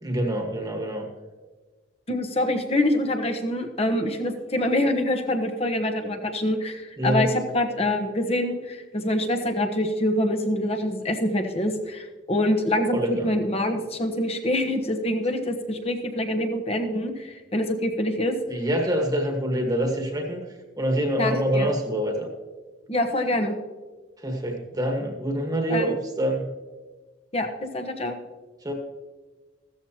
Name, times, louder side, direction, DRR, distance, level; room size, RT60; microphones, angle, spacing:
voice 1, 0.0-1.1 7.0-7.3 12.9-13.3 18.5-20.4 20.8-22.3 24.2-26.5 28.6-28.7, right 1 dB, 20° right, 2 dB, 1.5 m, -26 dB
voice 2, 2.1-7.3 7.5-18.3 21.2-21.7 22.9-23.5 25.7-25.9 27.3-28.2, left 1 dB, 35° left, 6 dB, 1.2 m, -25 dB
15.5 x 13.5 x 2.9 m, 1.3 s
head